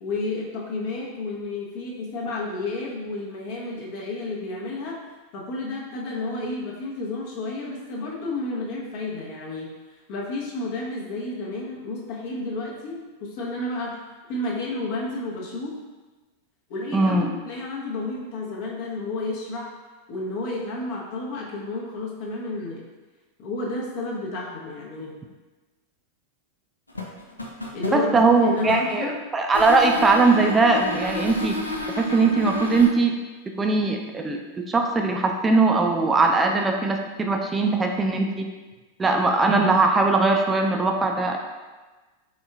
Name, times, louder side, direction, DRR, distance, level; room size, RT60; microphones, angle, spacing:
voice 1, 0.0-5.0 5.3-9.7 10.1-14.0 14.3-15.8 16.7-19.7 20.1-22.8 23.4-25.1 27.7-28.1 28.5-29.1, left 2 dB, 45° left, -3 dB, 0.8 m, -31 dB
voice 2, 16.9-17.3 27.9-31.6 32.0-33.1 33.6-38.5 39.0-41.4, right 3 dB, 15° right, 2 dB, 0.4 m, -20 dB
sound 1, 26.9-29.0 29.5-32.9, left 2 dB, 80° left, 0.4 m, -31 dB
4.1 x 3.5 x 2.4 m, 1.3 s
figure-of-eight pair, 90°, 0 cm